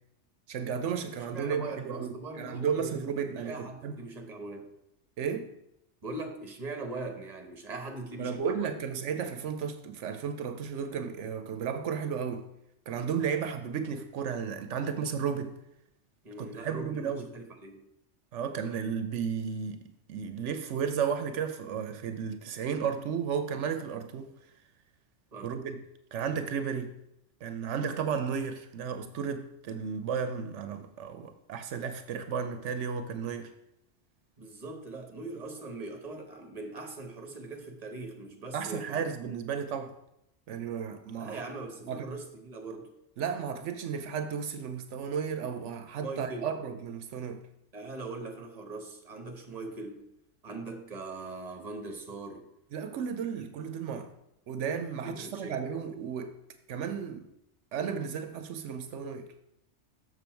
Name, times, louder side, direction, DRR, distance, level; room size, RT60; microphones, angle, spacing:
voice 1, 0.5-4.0 5.2-5.5 8.2-12.5 12.9-15.6 16.4-17.3 18.3-19.8 20.1-24.3 25.4-25.8 26.1-26.9 27.4-33.5 38.5-39.9 40.5-41.4 41.9-42.1 43.2-47.4 52.7-54.1 54.5-56.3 56.7-57.3 57.7-59.3, right 7 dB, 80° right, 1.0 m, -33 dB
voice 2, 1.2-4.7 6.0-8.7 16.2-17.9 25.3-25.6 34.4-39.0 41.2-42.9 46.0-46.5 47.7-50.1 50.4-52.5 53.3-53.4 55.0-55.6, right 3 dB, 35° right, 1.2 m, -41 dB
6.9 x 6.4 x 4.5 m
omnidirectional pair, 1.2 m